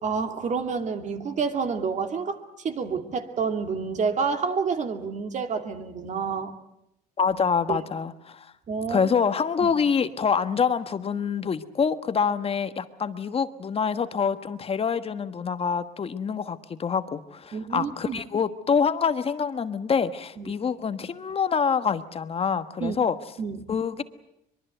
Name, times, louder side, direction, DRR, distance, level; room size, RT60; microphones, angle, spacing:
voice 1, 0.0-6.6 7.7-7.8 8.7-9.1 9.6-9.7 17.5-18.2 20.4-20.5 22.8-23.0 23.4-23.7, right 5 dB, 45° right, 6 dB, 2.5 m, -29 dB
voice 2, 7.2-8.5 8.9-23.1 23.7-24.0, left 6 dB, 35° left, 10 dB, 1.4 m, -26 dB
24.0 x 22.5 x 8.0 m, 0.82 s
cardioid pair, 110°, 17 cm